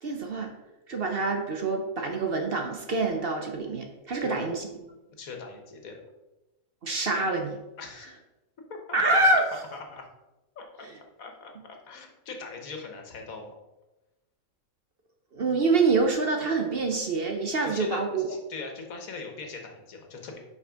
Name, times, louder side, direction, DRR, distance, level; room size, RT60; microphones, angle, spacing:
voice 1, 0.0-0.5 0.9-4.7 6.8-7.6 8.9-9.4 15.3-18.2, right 3 dB, 50° right, 3 dB, 0.9 m, -26 dB
voice 2, 5.2-6.0 7.8-8.1 8.7-9.2 9.7-10.1 10.5-10.9 11.2-13.5 17.6-20.4, left 4 dB, 75° left, 3 dB, 1.6 m, -41 dB
5.8 x 5.2 x 5.0 m, 1.0 s
omnidirectional pair, 1.5 m